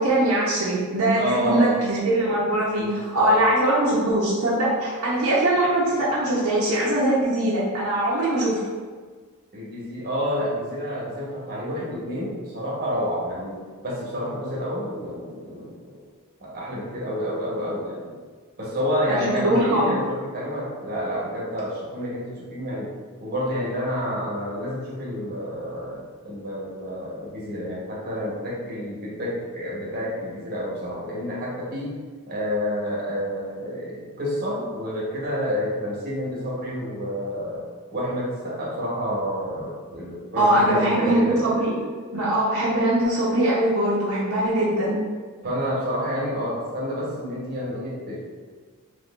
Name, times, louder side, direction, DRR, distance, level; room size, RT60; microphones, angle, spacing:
voice 1, 0.0-8.6 19.1-19.9 40.4-41.7 42.1-45.0, right 1 dB, 75° right, -6 dB, 0.7 m, -21 dB
voice 2, 1.1-1.9 2.8-3.3 9.5-16.0 16.4-18.2 18.6-22.9 23.2-31.9 32.3-37.6 37.9-41.4 45.4-48.2, equal, 45° right, -5 dB, 0.9 m, -29 dB
3.7 x 3.1 x 2.4 m, 1.5 s
head